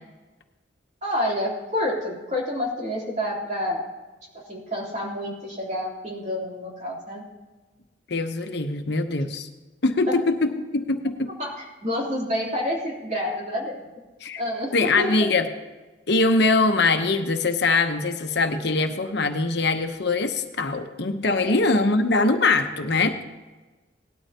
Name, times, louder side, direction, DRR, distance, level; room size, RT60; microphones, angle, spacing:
voice 1, 1.0-3.8 4.3-7.2 10.0-10.1 11.4-13.9 14.4-15.3 21.4-21.6, left 1 dB, 40° right, -3 dB, 3.4 m, -28 dB
voice 2, 8.1-9.5 9.8-11.3 14.2-14.4 14.7-15.5 16.1-23.2, left 3 dB, 65° left, 6 dB, 1.0 m, -22 dB
18.5 x 12.5 x 2.9 m, 1.2 s
head